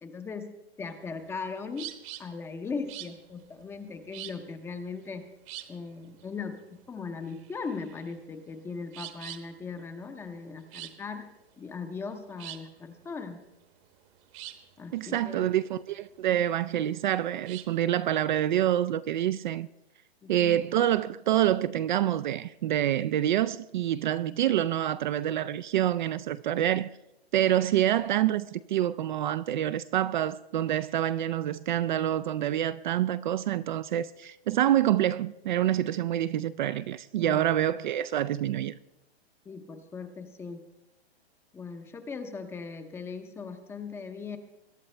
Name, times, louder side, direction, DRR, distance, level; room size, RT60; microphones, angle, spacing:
voice 1, 0.0-1.9 2.2-5.3 5.7-11.3 11.6-13.4 14.8-15.5 20.2-20.6 37.2-37.4 39.5-40.6 41.5-44.4, left 4 dB, 10° left, 0.6 m, -39 dB
sound 1, 0.9-17.8, right 14 dB, 30° right, 1.0 m, -46 dB
voice 2, 14.9-19.7 20.3-26.9 27.3-38.7, right 12 dB, 50° right, 0.4 m, -27 dB
22.0 x 11.0 x 3.3 m
hypercardioid pair, 150°, 32 cm